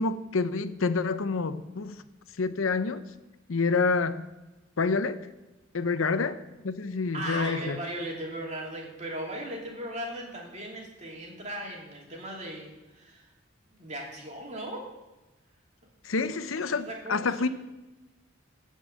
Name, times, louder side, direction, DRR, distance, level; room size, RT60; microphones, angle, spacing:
voice 1, 0.0-2.0 2.4-3.0 3.5-4.2 4.8-5.2 5.7-6.4 6.6-7.8 16.0-17.5, left 4 dB, 85° left, 12 dB, 0.7 m, -27 dB
voice 2, 7.1-13.3 13.7-14.9 16.2-17.5, right 1 dB, 35° right, -1 dB, 2.8 m, -38 dB
15.0 x 5.4 x 7.7 m, 1.1 s
head